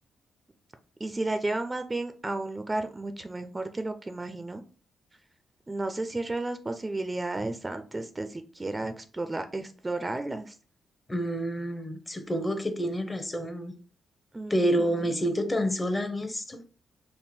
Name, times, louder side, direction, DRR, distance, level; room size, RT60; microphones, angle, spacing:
voice 1, 1.0-4.6 5.7-10.6 14.3-14.9, right 2 dB, 25° right, 0.5 m, -33 dB
voice 2, 11.1-13.7 14.5-16.6, equal, 25° left, 0.8 m, -28 dB
3.6 x 2.1 x 4.2 m
supercardioid pair, 60°, 0 cm